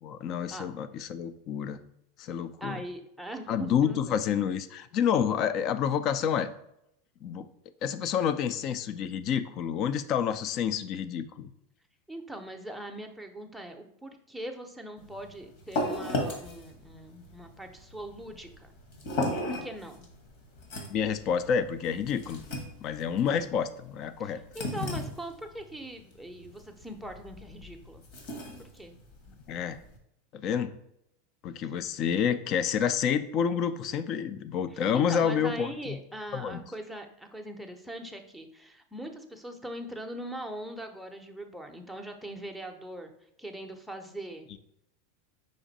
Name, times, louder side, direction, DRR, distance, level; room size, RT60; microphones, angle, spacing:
voice 1, 0.0-1.8 2.2-2.8 3.5-6.5 7.2-7.5 7.8-11.5 20.9-22.5 22.8-24.4 29.5-29.8 30.3-30.7 31.4-36.0 36.3-36.6, left 8 dB, 45° left, 13 dB, 0.4 m, -29 dB
voice 2, 2.6-4.0 12.1-18.7 19.4-20.1 24.2-28.0 28.6-28.9 34.7-43.1 43.4-44.6, right 1 dB, ahead, 6 dB, 0.6 m, -41 dB
sound 1, 15.0-30.0, left 1 dB, 60° left, 1.3 m, -37 dB
5.1 x 2.6 x 4.0 m, 0.79 s
supercardioid pair, 120°, 0 cm